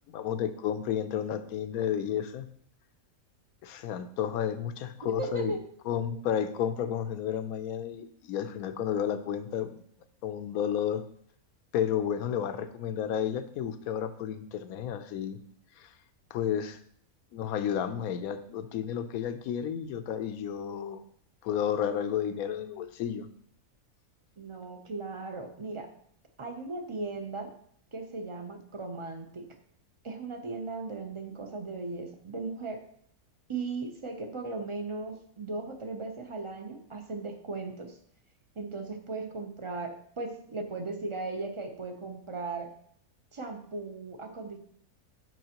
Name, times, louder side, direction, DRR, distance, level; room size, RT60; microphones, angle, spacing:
voice 1, 0.1-2.5 3.6-5.5 5.9-9.8 10.2-11.0 11.7-15.4 15.8-15.9 16.3-16.8 17.3-21.0 21.4-23.3, left 9 dB, 75° left, 10 dB, 1.1 m, -32 dB
voice 2, 5.0-5.6 24.4-25.9 26.4-27.5 27.9-29.5 30.0-32.8 33.5-38.0 38.6-42.7 43.3-44.6, right 3 dB, 30° right, 5 dB, 0.6 m, -37 dB
9.3 x 6.1 x 2.9 m, 0.64 s
omnidirectional pair, 1.5 m